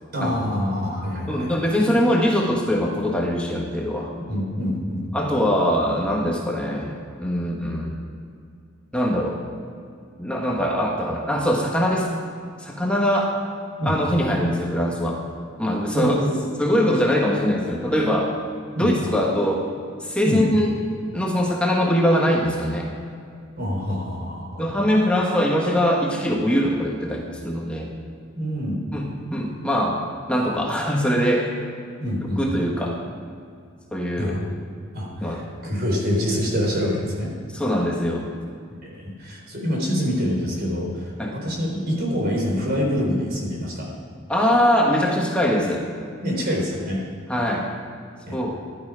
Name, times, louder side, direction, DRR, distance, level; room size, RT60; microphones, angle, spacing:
voice 1, 0.1-1.6 4.2-5.3 13.8-14.0 15.9-16.4 18.8-18.9 20.2-20.4 23.6-24.7 28.4-28.8 32.0-32.6 34.2-34.4 34.9-35.4 35.6-37.3 38.8-43.9 46.2-47.0 48.3-48.4, equal, 55° right, -1 dB, 4.1 m, -26 dB
voice 2, 1.3-4.1 5.1-8.0 8.9-9.4 10.2-12.1 12.6-13.4 13.8-15.2 15.6-16.1 16.6-18.3 18.8-19.7 20.0-20.7 21.1-22.9 24.6-27.9 28.9-30.0 30.3-31.5 32.4-33.0 33.9-34.3 35.2-35.8 37.5-38.3 41.2-41.4 44.3-45.9 47.3-47.7 48.3-48.6, equal, 5° left, -1 dB, 1.3 m, -22 dB
15.5 x 12.0 x 5.0 m, 2.3 s
head